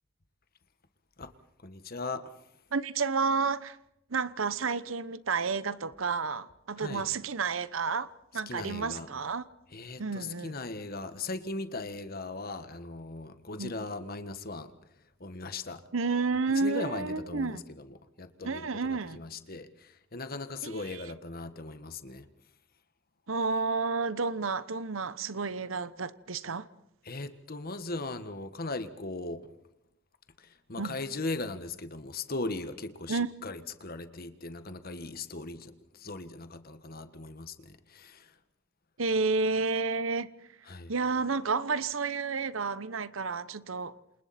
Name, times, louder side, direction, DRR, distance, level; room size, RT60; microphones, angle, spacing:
voice 1, 1.6-2.3 6.8-7.1 8.5-9.1 9.7-14.7 15.2-15.8 16.5-22.3 27.0-29.5 30.4-38.4 40.6-40.9, left 3 dB, 45° left, 1.6 m, -38 dB
voice 2, 2.7-3.8 4.1-9.4 10.0-10.5 13.6-13.7 15.9-17.6 18.4-19.2 20.6-20.7 23.3-26.7 30.8-31.0 33.1-33.3 39.0-40.3 40.9-43.9, right 4 dB, 80° right, 1.0 m, -30 dB
28.0 x 27.5 x 4.4 m
head